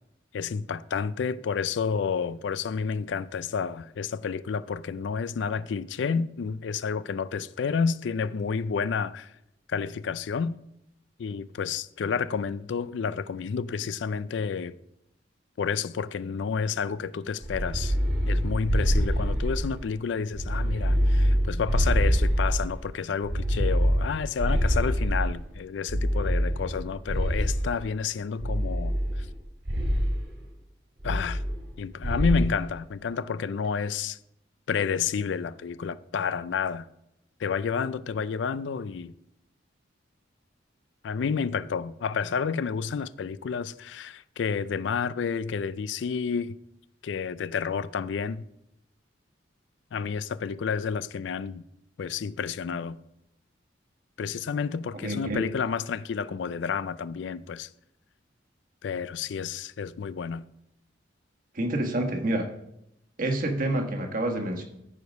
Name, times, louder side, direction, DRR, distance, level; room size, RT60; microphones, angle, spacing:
voice 1, 0.3-9.3 9.7-10.6 11.2-14.7 15.6-18.0 18.3-29.3 31.0-31.4 31.8-34.2 34.7-36.9 37.4-39.1 41.0-46.5 47.0-48.4 49.9-51.6 52.0-53.0 54.2-57.7 58.8-60.5, left 6 dB, 70° left, 0.4 m, -30 dB
sound 1, 17.4-19.9 20.3-22.8 23.2-25.4 25.9-27.8 28.4-29.4 29.7-30.2 31.0-31.8 32.0-32.5, equal, 85° right, 3.2 m, -25 dB
voice 2, 54.9-55.5 61.5-62.5 63.2-64.6, right 1 dB, 45° right, 1.4 m, -28 dB
14.0 x 4.9 x 5.3 m
head